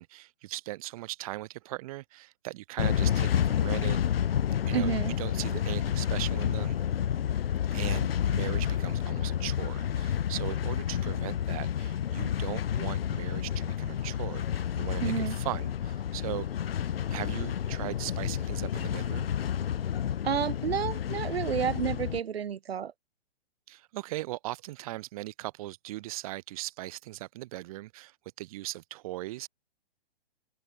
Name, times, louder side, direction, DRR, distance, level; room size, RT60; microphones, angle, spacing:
voice 1, 0.0-4.0 4.7-4.9 5.2-6.8 7.7-16.5 17.1-19.3 23.7-29.5, right 17 dB, 35° right, 4.7 m, -39 dB
sound 1, 2.8-22.2, left 9 dB, 70° left, 2.2 m, -30 dB
voice 2, 4.7-5.2 15.0-15.4 20.2-22.9, right 8 dB, 80° right, 5.6 m, -30 dB
open air
hypercardioid pair, 170°, 30 cm